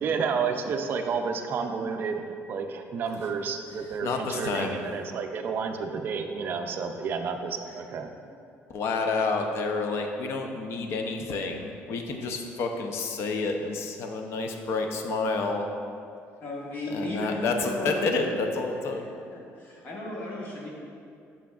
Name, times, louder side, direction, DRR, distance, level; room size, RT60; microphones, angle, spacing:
voice 1, 0.0-8.1, right 5 dB, 40° right, 5 dB, 0.4 m, -30 dB
voice 2, 4.0-4.8 8.7-15.7 16.9-19.1, left 3 dB, 55° left, 4 dB, 0.5 m, -29 dB
voice 3, 16.4-18.0 18.9-19.0 19.3-20.7, left 1 dB, 40° left, -4 dB, 1.2 m, -35 dB
6.8 x 6.0 x 2.4 m, 2.5 s
cardioid pair, 165°, 5 cm